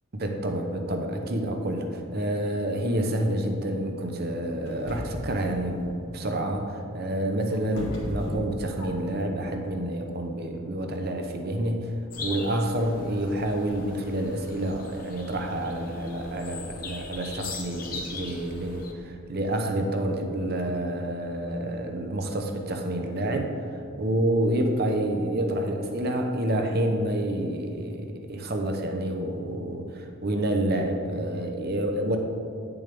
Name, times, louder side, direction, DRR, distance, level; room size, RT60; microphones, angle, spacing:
voice 1, 0.1-11.9 12.2-23.5 24.0-32.2, right 1 dB, 45° right, 4 dB, 0.8 m, -28 dB
sound 1, 4.6-5.4 6.9-9.2, equal, 70° left, 1.7 m, -36 dB
sound 2, 12.1-18.9, left 4 dB, 45° left, 0.9 m, -40 dB
9.9 x 7.1 x 3.4 m, 2.5 s
head